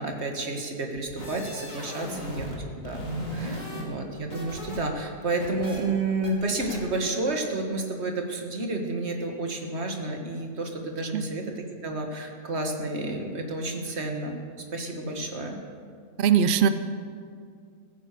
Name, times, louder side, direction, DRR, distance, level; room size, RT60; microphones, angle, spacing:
voice 1, 0.0-3.0 3.3-11.4 11.8-15.6, right 2 dB, 45° right, 3 dB, 1.8 m, -30 dB
sound 1, 1.0-2.6 2.8-4.8 5.1-5.8 6.2-6.3 6.6-6.8, equal, 30° left, 2.6 m, -36 dB
voice 2, 16.2-16.7, right 8 dB, 80° right, 11 dB, 0.4 m, -20 dB
15.0 x 9.8 x 6.8 m, 2.2 s
omnidirectional pair, 1.7 m